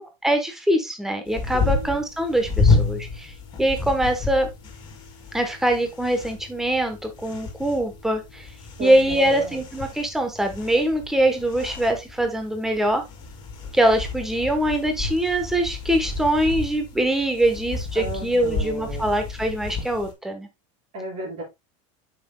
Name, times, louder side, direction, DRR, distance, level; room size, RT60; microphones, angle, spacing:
voice 1, 0.0-3.3 3.6-4.5 5.3-8.5 8.8-13.0 13.7-20.5, right 1 dB, ahead, 5 dB, 1.1 m, -23 dB
sound 1, 1.3-20.1, left 3 dB, 25° left, 2.6 m, -30 dB
voice 2, 1.5-2.1 8.8-9.6 17.9-19.1 20.9-21.4, right 2 dB, 35° right, -2 dB, 4.8 m, -33 dB
8.5 x 6.0 x 2.3 m, 0.21 s
supercardioid pair, 165°, 17 cm